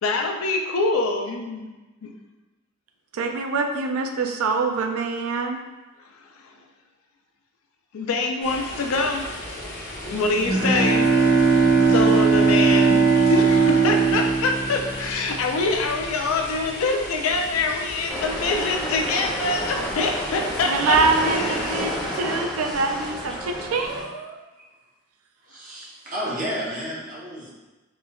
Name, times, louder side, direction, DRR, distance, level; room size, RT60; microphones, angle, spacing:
voice 1, 0.0-1.7 2.0-2.1 6.2-6.5 7.9-9.3 10.1-11.1 11.9-13.0 13.3-21.0 21.2-21.8, left 3 dB, 75° left, 3 dB, 0.4 m, -25 dB
voice 2, 3.1-5.6 20.7-24.4, right 4 dB, 90° right, 4 dB, 0.4 m, -24 dB
sound 1, 8.4-22.1, left 1 dB, 45° left, 0.7 m, -36 dB
Bowed string instrument, 10.1-15.6, right 5 dB, 70° right, 0.9 m, -19 dB
sound 2, 18.1-24.0, equal, ahead, 0.3 m, -30 dB
voice 3, 25.5-27.5, equal, 40° right, -6 dB, 0.8 m, -31 dB
4.3 x 2.2 x 2.3 m, 1.1 s
head